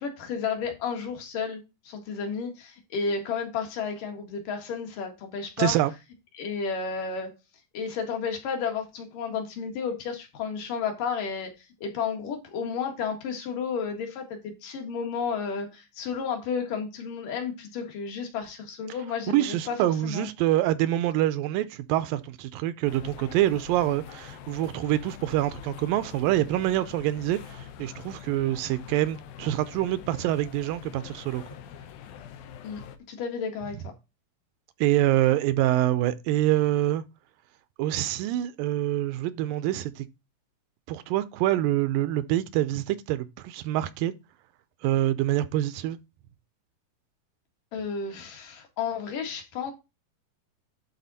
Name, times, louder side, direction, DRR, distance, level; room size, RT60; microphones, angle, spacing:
voice 1, 0.0-5.7 6.4-7.3 7.7-11.5 11.8-19.8 20.0-20.3 32.6-32.8 33.1-33.8 47.7-49.7, left 6 dB, 65° left, 3.2 m, -32 dB
voice 2, 5.6-5.9 19.3-31.4 34.8-37.0 37.8-40.1 40.9-44.1 44.8-46.0, right 14 dB, 80° right, 2.2 m, -26 dB
sound 1, 22.8-33.0, left 9 dB, 85° left, 2.7 m, -44 dB
11.5 x 4.2 x 4.1 m
omnidirectional pair, 4.2 m